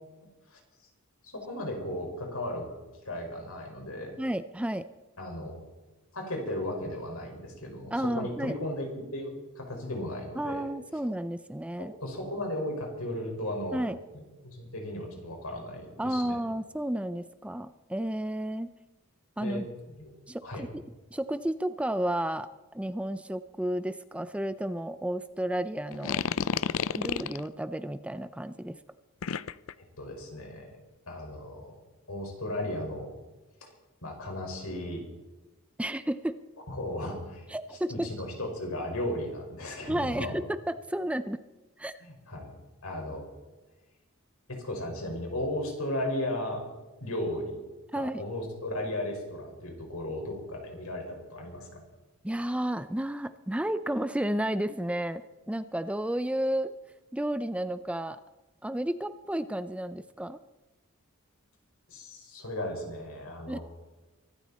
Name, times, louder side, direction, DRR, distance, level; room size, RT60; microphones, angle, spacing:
voice 1, 1.2-4.1 5.2-5.5 6.1-8.9 9.1-10.6 11.8-13.8 14.1-16.4 19.4-19.6 20.0-20.1 20.4-20.6 29.8-30.8 31.1-31.8 32.1-33.1 33.6-33.7 34.0-35.0 36.7-37.5 37.9-40.3 42.0-42.5 42.8-43.3 44.5-46.6 47.0-47.6 47.9-51.8 61.9-63.6, left 1 dB, 85° left, 2 dB, 5.3 m, -35 dB
voice 2, 4.2-4.9 7.9-8.5 10.4-11.9 13.7-14.0 16.0-18.7 19.4-19.6 20.3-20.8 21.1-26.2 26.9-28.8 35.8-36.4 37.5-38.1 39.9-41.4 41.8-42.0 47.9-48.2 52.2-56.7 57.1-58.2 58.6-60.4 63.5-63.6, right 1 dB, 5° right, 12 dB, 0.4 m, -32 dB
sound 1, 25.9-27.5 29.2-29.7, left 7 dB, 65° left, 0.5 m, -30 dB
24.0 x 13.0 x 4.3 m, 1.1 s
head